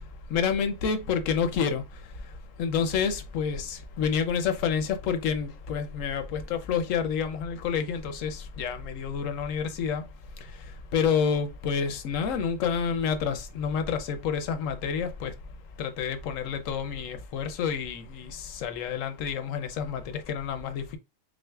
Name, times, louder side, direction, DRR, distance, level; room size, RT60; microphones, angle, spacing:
voice 1, 0.3-1.8 2.6-10.0 10.9-15.3 15.8-21.0, left 6 dB, 90° left, 1.1 m, -29 dB
6.1 x 2.1 x 2.3 m
omnidirectional pair, 1.3 m